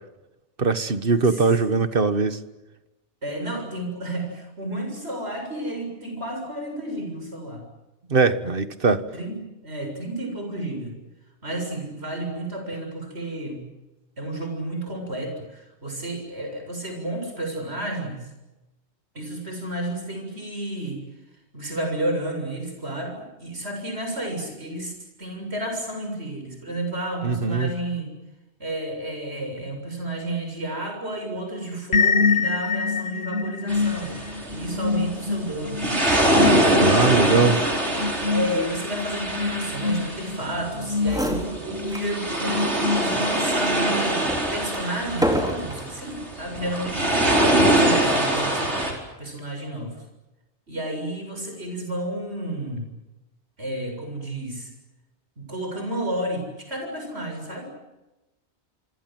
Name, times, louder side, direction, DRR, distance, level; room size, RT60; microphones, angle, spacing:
voice 1, 0.6-2.4 8.1-9.0 27.2-27.7 36.8-37.6, right 4 dB, 55° right, 11 dB, 1.6 m, -21 dB
voice 2, 3.2-7.7 9.1-11.0 11.4-13.7 14.2-18.3 19.1-21.0 21.5-24.9 25.2-28.1 28.6-34.2 34.5-35.9 36.3-36.7 38.3-48.7 49.2-50.0 50.7-52.9 53.6-54.7 55.4-57.7, right 1 dB, 70° right, 4 dB, 7.6 m, -31 dB
sound 1, 31.9-43.6, left 4 dB, 70° left, 1.5 m, -27 dB
sound 2, 33.7-48.9, right 1 dB, 85° right, 5.3 m, -24 dB
sound 3, 40.7-40.8 41.0-42.1 42.6-42.7 43.4-46.0 46.7-47.1, equal, 5° right, 4.3 m, -29 dB
27.5 x 25.5 x 7.8 m, 1.0 s
omnidirectional pair, 1.1 m